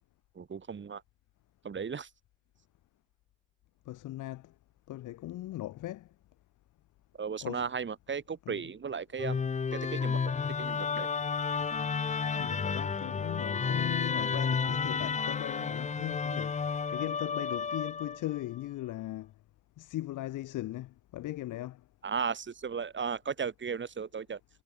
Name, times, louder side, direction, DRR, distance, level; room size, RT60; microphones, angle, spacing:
voice 1, 0.4-1.0 1.6-2.1 7.2-9.4 9.9-10.2 10.6-11.1 22.0-24.4, right 6 dB, 40° right, 2.3 m, -35 dB
voice 2, 3.9-4.5 4.9-6.1 7.4-7.6 8.5-8.6 12.4-16.6 16.9-19.3 19.8-21.8, left 15 dB, 90° left, 4.6 m, -38 dB
Musical instrument, 9.2-18.4, left 5 dB, 25° left, 0.6 m, -32 dB
cardioid pair, 90°, 30 cm